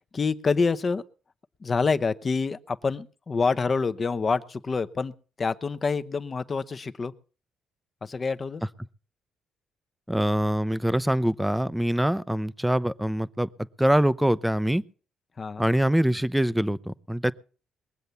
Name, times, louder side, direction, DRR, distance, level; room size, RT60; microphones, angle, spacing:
voice 1, 0.1-1.0 1.6-5.1 5.4-7.1 8.0-8.6 15.4-15.7, left 4 dB, 35° left, 0.9 m, -27 dB
voice 2, 10.1-13.5 13.8-14.8 15.6-17.3, equal, 5° right, 0.7 m, -24 dB
21.5 x 7.9 x 7.0 m
cardioid pair, 90°, 0 cm